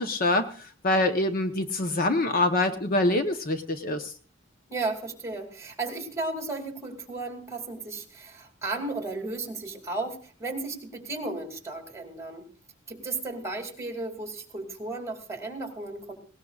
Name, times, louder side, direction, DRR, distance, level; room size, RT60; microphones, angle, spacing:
voice 1, 0.0-4.1, left 2 dB, 50° left, 7 dB, 1.0 m, -25 dB
voice 2, 4.7-12.5 12.9-16.1, right 2 dB, 15° right, 3 dB, 2.5 m, -34 dB
19.0 x 18.0 x 2.4 m, 0.40 s
head